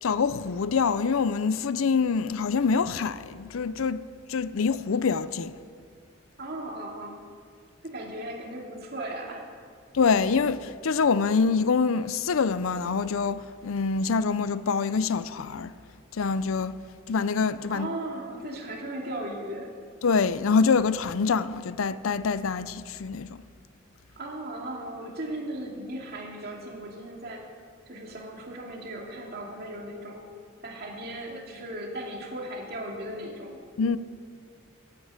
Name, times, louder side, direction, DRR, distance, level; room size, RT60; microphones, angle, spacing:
voice 1, 0.0-4.0 4.3-5.5 9.9-15.7 16.1-16.8 17.1-17.9 20.0-23.4 33.8-34.0, left 5 dB, 80° left, 0.5 m, -25 dB
voice 2, 6.4-7.2 7.8-9.7 17.7-19.7 24.2-27.4 27.9-30.2 30.6-33.6, right 1 dB, 50° right, 2.4 m, -37 dB
11.0 x 10.5 x 8.8 m
head